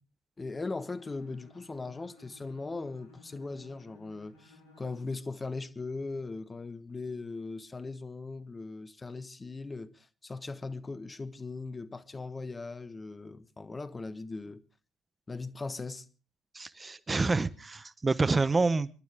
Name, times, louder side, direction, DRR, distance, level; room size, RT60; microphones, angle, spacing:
voice 1, 0.4-14.6 15.3-16.0, left 3 dB, 25° left, 1.2 m, -39 dB
Bowed string instrument, 0.9-5.1, left 2 dB, 80° left, 6.6 m, -57 dB
voice 2, 16.5-18.9, right 3 dB, 25° right, 0.9 m, -27 dB
28.5 x 12.0 x 3.6 m
hypercardioid pair, 55°, 0 cm